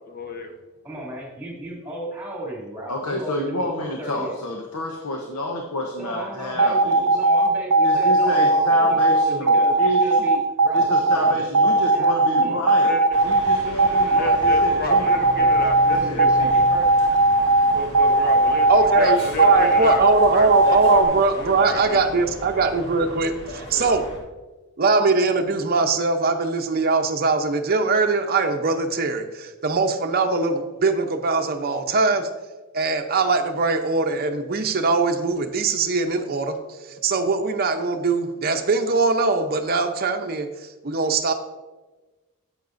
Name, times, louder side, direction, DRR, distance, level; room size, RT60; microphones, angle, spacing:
voice 1, 0.1-0.5 12.8-13.2 13.7-16.4 17.7-18.7 19.0-20.0 20.3-20.5 20.9-22.1 23.7-23.9, left 3 dB, 40° left, 4 dB, 1.0 m, -31 dB
voice 2, 0.8-4.3 6.0-12.6 15.3-16.9, right 1 dB, 5° right, -4 dB, 2.5 m, -35 dB
voice 3, 2.9-7.2 7.8-10.3 10.7-12.9 13.2-15.2 15.8-16.6, left 1 dB, 80° left, 2 dB, 0.9 m, -29 dB
sound 1, 6.6-21.0, right 2 dB, 90° right, 0.6 m, -17 dB
sound 2, 13.1-24.2, equal, 25° left, 2.0 m, -37 dB
voice 4, 18.7-24.1 24.8-32.3 32.7-36.5 37.0-40.5 40.8-41.3, right 3 dB, 45° right, 5 dB, 0.7 m, -21 dB
10.5 x 8.0 x 2.6 m, 1.2 s
head